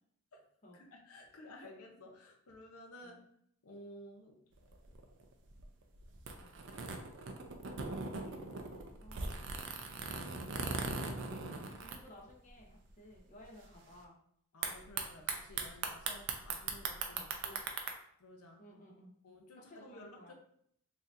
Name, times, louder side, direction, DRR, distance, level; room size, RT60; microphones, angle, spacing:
voice 1, 0.7-3.2 3.6-4.4 8.2-8.5 11.3-11.6 14.5-17.9 18.2-18.6 19.2-20.3, left 1 dB, 75° left, 2 dB, 0.7 m, -54 dB
sound 1, 4.6-12.6 12.9-13.0 13.2-13.6 14.6-17.9, right 4 dB, 55° right, 0.4 m, -40 dB
voice 2, 7.5-8.0 8.5-9.4 10.5-11.1 11.8-14.2 17.1-17.2 18.6-19.2 19.7-20.3, equal, 35° left, -1 dB, 0.9 m, -57 dB
4.0 x 2.7 x 2.5 m, 0.68 s
head